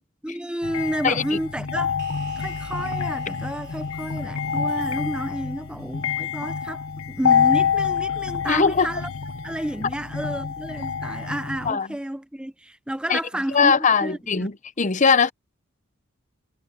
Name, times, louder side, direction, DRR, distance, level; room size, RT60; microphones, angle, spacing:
voice 1, 0.2-2.0 2.4-9.1 9.4-13.7 14.0-14.5, right 1 dB, 5° right, 0.5 m, -31 dB
sound 1, 0.6-11.7, left 6 dB, 85° left, 0.9 m, -27 dB
voice 2, 1.0-1.4 8.5-8.9 11.7-11.9 13.1-13.2 13.5-15.3, left 5 dB, 35° left, 0.7 m, -20 dB
sound 2, 2.0-6.6, right 8 dB, 55° right, 4.3 m, -52 dB
head